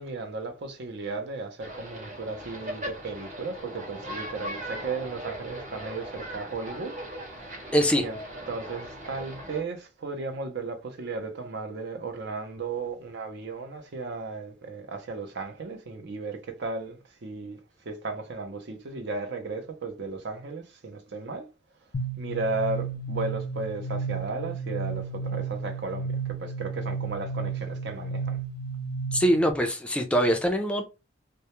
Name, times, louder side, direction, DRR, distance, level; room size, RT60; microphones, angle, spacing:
voice 1, 0.0-6.9 7.5-7.6 7.9-8.2 8.5-17.6 17.8-21.5 22.2-28.4, right 3 dB, 65° right, 0.6 m, -35 dB
sound 1, 1.6-9.6, right 1 dB, 45° right, 0.9 m, -39 dB
voice 2, 7.7-8.0 29.1-30.8, equal, 5° left, 0.3 m, -23 dB
sound 2, 21.9-29.5, right 4 dB, 65° left, 0.5 m, -33 dB
2.2 x 2.0 x 2.9 m
head